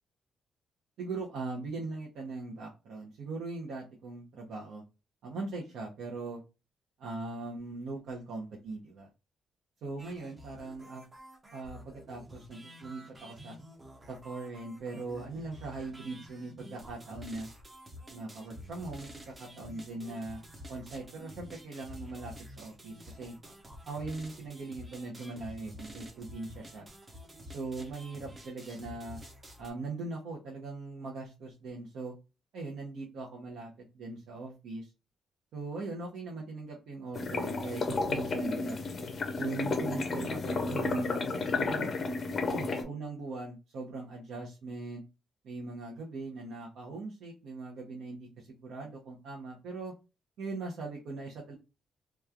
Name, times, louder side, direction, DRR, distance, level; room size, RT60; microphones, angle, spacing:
voice 1, 1.0-4.8 5.2-6.4 7.0-9.1 9.8-11.0 11.5-13.6 14.1-17.5 18.1-20.4 20.7-23.4 23.9-26.9 27.5-29.2 29.6-32.1 32.5-34.9 35.5-38.8 39.4-41.9 42.5-45.0 45.4-49.9 50.4-51.5, right 3 dB, 70° right, -2 dB, 0.8 m, -40 dB
sound 1, 10.0-29.7, equal, 20° right, 0.6 m, -49 dB
sound 2, 37.1-42.8, left 3 dB, 35° left, 0.5 m, -32 dB
3.0 x 2.3 x 2.4 m, 0.28 s
cardioid pair, 175°, 0 cm